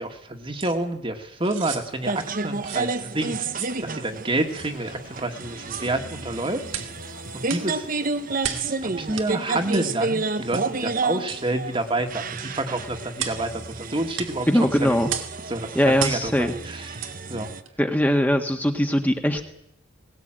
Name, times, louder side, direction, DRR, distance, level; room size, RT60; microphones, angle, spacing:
voice 1, 0.0-3.5 3.8-6.7 7.3-7.9 8.4-14.5 14.8-15.0 15.5-17.5, right 2 dB, 25° right, 5 dB, 2.0 m, -29 dB
sound 1, 0.6-0.8 1.4-1.9 2.6-2.9 3.5-3.8 4.5-4.7 5.6-5.9 6.7-6.9 7.5-7.7 8.4-8.7 9.2-9.3 9.7-9.9 10.5-10.7 11.3-11.5 12.4-12.5 13.2-13.4 14.2-14.3 15.1-15.3 16.0-16.3 17.0-17.2 17.6-17.7, right 8 dB, 90° right, 2.4 m, -33 dB
sound 2, 2.0-17.6, right 3 dB, 45° right, 1.0 m, -31 dB
sound 3, 4.3-8.5, left 3 dB, 80° left, 2.9 m, -48 dB
voice 2, 14.5-15.1 15.7-16.5 17.8-19.5, equal, 10° left, 4 dB, 1.6 m, -21 dB
20.0 x 19.0 x 9.0 m, 0.78 s
head